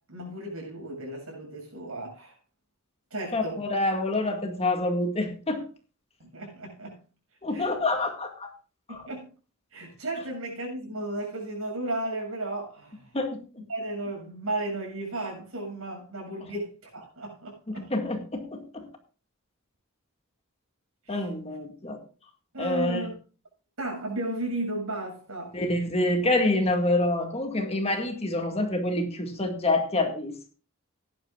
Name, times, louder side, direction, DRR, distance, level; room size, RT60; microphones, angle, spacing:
voice 1, 0.1-2.3 3.1-3.6 6.2-7.0 7.5-7.7 8.9-9.3 9.7-13.1 13.7-17.9 21.1-21.2 22.5-23.2 23.8-25.6, right 1 dB, 75° right, 7.3 m, -34 dB
voice 2, 3.3-5.6 7.4-8.5 8.9-9.0 13.1-13.4 17.8-18.4 18.7-18.9 21.1-22.0 22.6-23.1 25.5-30.5, left 2 dB, 30° left, 1.9 m, -27 dB
17.5 x 11.0 x 2.4 m
head